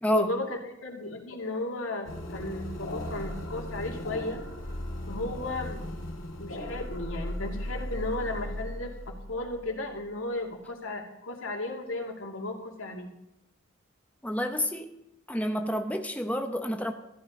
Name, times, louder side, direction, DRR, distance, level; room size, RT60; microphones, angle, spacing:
voice 1, 0.1-4.4 5.1-5.9 6.4-13.1, left 2 dB, 90° left, 2 dB, 2.5 m, -35 dB
sound 1, 2.0-10.0, left 1 dB, 70° left, 3.0 m, -37 dB
voice 2, 14.2-15.0 15.3-16.9, equal, 5° left, 5 dB, 0.8 m, -29 dB
14.5 x 12.0 x 5.4 m, 0.85 s
head